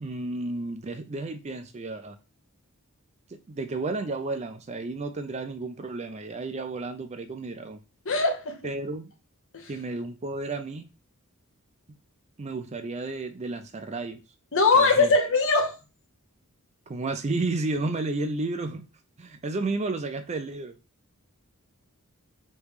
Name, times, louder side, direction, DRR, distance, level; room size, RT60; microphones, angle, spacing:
voice 1, 0.0-2.2 3.3-7.8 8.6-9.1 9.7-10.9 12.4-14.2 14.7-15.1 16.9-18.9 19.2-20.8, right 3 dB, 30° right, 0.4 m, -32 dB
voice 2, 8.0-8.6 9.5-9.7 14.5-15.7, left 3 dB, 60° left, 1.0 m, -21 dB
3.3 x 3.1 x 4.8 m
head